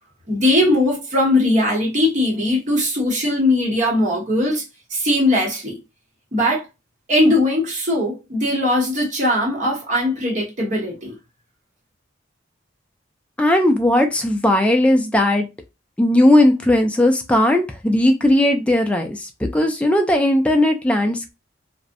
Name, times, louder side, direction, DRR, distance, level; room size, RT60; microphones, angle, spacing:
voice 1, 0.3-4.6 4.9-5.8 6.3-6.7 7.1-11.1, left 1 dB, 40° right, 0.8 m, -19 dB
voice 2, 13.4-15.5 16.0-21.3, left 1 dB, 5° left, 0.3 m, -17 dB
2.5 x 2.0 x 2.5 m
head